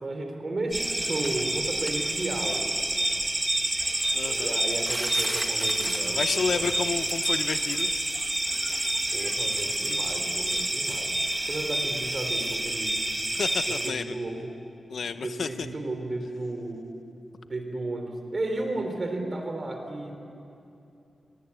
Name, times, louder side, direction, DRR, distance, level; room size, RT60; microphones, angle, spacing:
voice 1, 0.0-2.7 4.3-6.9 9.1-11.1 11.5-13.0 13.7-14.5 15.0-16.9 17.5-20.2, right 2 dB, 30° right, 4 dB, 3.3 m, -34 dB
sound 1, 0.7-13.9, right 1 dB, 15° right, 1.5 m, -28 dB
voice 2, 4.1-4.6 6.2-7.9 13.3-14.0 14.9-15.5, left 5 dB, 65° left, 10 dB, 0.7 m, -30 dB
29.5 x 22.5 x 8.3 m, 2.8 s
wide cardioid pair, 175°, 0 cm